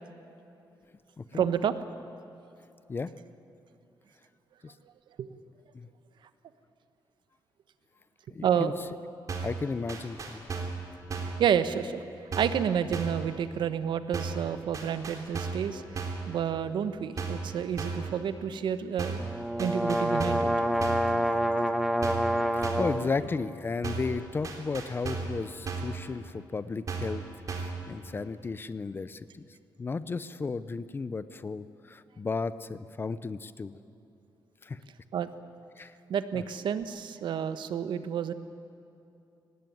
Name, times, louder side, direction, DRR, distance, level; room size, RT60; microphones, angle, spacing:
voice 1, 1.3-1.7 5.2-5.3 8.4-8.7 11.4-12.0 12.4-15.8 16.3-19.2 19.6-20.5 35.1-35.3 36.1-38.3, right 8 dB, 80° right, 12 dB, 1.2 m, -29 dB
voice 2, 8.3-8.7 9.4-10.5 22.5-27.2 27.5-29.4 29.8-33.8 34.6-34.8 35.8-35.9 36.3-36.4, left 4 dB, 30° left, 15 dB, 0.7 m, -34 dB
sound 1, 9.3-9.6 9.9-10.8 11.1-11.4 12.3-12.6 12.9-13.2 14.1-14.5 14.7-15.7 15.9-16.3 17.2-17.5 17.8-18.1 19.0-19.3 19.6-20.5 20.8-21.1 22.0-22.3 22.6-23.0 23.8-24.2 24.4-25.4 25.7-26.0 26.9-27.2 27.5-27.8, right 4 dB, 45° right, 3.4 m, -34 dB
sound 2, 19.2-23.1, equal, 5° right, 1.4 m, -27 dB
24.0 x 18.5 x 9.4 m, 2.7 s
wide cardioid pair, 150°, 8 cm